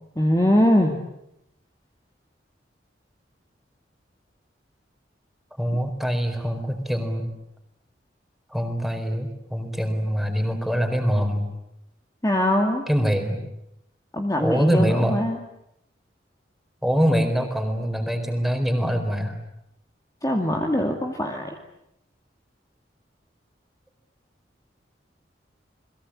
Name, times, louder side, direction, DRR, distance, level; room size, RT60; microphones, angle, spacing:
voice 1, 0.2-1.0 12.2-12.9 14.1-15.4 20.2-21.6, left 1 dB, 20° left, 2 dB, 2.3 m, -22 dB
voice 2, 5.6-7.3 8.5-11.5 12.9-13.4 14.4-15.2 16.8-19.4, equal, ahead, 6 dB, 4.4 m, -24 dB
29.5 x 22.0 x 8.7 m, 0.82 s
head